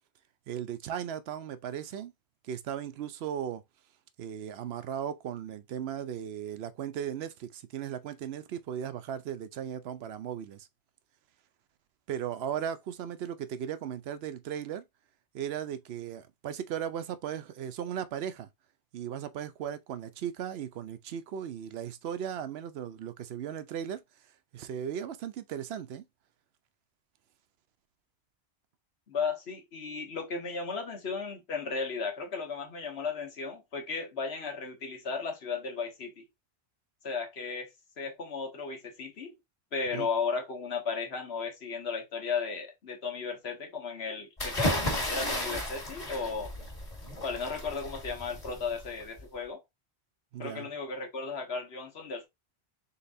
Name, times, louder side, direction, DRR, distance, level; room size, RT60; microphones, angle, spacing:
voice 1, 0.5-2.1 2.4-3.6 4.2-10.7 12.1-14.8 15.3-18.5 18.9-24.0 24.5-26.0 39.9-40.1 50.3-50.7, right 9 dB, 75° right, 0.8 m, -37 dB
voice 2, 29.1-36.2 37.0-37.7 38.0-39.3 39.7-46.5 47.2-49.6 50.4-52.3, left 5 dB, 80° left, 1.4 m, -35 dB
sound 1, 44.4-49.2, left 1 dB, 35° left, 1.7 m, -34 dB
3.9 x 3.8 x 2.6 m
omnidirectional pair, 1.1 m